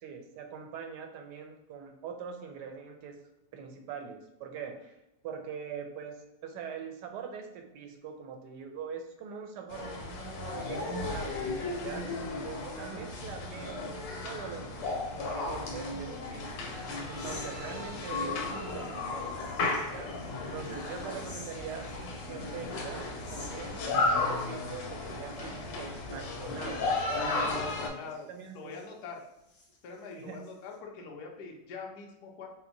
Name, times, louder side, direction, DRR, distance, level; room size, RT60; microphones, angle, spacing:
voice 1, 0.0-3.1 3.5-5.0 5.2-11.5 11.8-12.1 12.4-13.9 14.2-16.8 17.1-19.5 19.9-20.1 20.4-21.9 22.3-27.0 27.3-27.5 28.3-28.8 30.2-30.4, right 6 dB, 75° right, 4 dB, 1.2 m, -43 dB
sound 1, 9.7-27.9, left 3 dB, 85° left, 1.4 m, -34 dB
sound 2, 14.8-15.7 16.1-24.9 25.3-25.4 25.7-25.8 26.3-28.9 29.4-30.8, left 2 dB, 40° left, 0.7 m, -49 dB
voice 2, 27.5-28.3 28.5-29.2 29.8-32.5, left 5 dB, 70° left, 0 dB, 1.1 m, -44 dB
4.4 x 2.1 x 3.8 m, 0.91 s
omnidirectional pair, 1.9 m